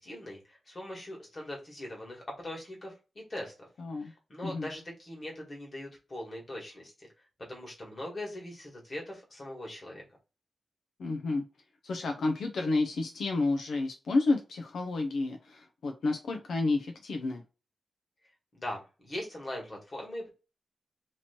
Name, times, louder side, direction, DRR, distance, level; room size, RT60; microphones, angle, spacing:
voice 1, 0.0-2.9 3.3-3.5 4.0-7.1 7.5-10.0 18.5-20.3, left 1 dB, 30° left, -1 dB, 1.6 m, -41 dB
voice 2, 3.8-4.1 4.4-4.7 11.0-11.4 11.8-17.4, left 3 dB, 80° left, 3 dB, 0.6 m, -30 dB
3.0 x 2.9 x 4.2 m, 0.31 s
wide cardioid pair, 150°, 0 cm